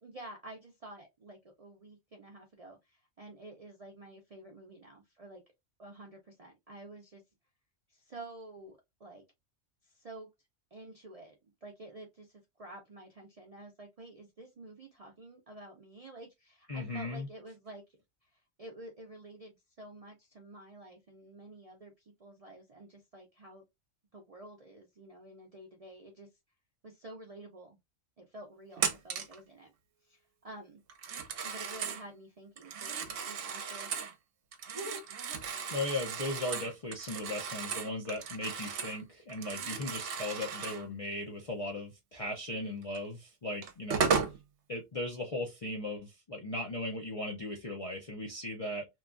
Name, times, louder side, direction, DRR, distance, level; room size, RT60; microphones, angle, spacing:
voice 1, 0.0-5.4 5.8-7.2 7.9-9.2 9.8-10.3 10.7-17.8 18.2-23.6 24.1-26.3 26.8-27.8 28.2-29.7 30.0-30.8 31.4-33.9 34.7-35.1, right 2 dB, 50° right, 0.4 m, -50 dB
voice 2, 16.7-17.3 35.7-44.1 44.7-48.9, left 1 dB, 45° left, 0.4 m, -37 dB
Telephone, 28.8-29.4 30.9-32.0 32.6-34.1 34.5-39.0 39.3-40.8 42.9-43.0 43.6-44.4, right 6 dB, 70° right, 0.9 m, -35 dB
3.0 x 2.3 x 2.4 m
omnidirectional pair, 1.3 m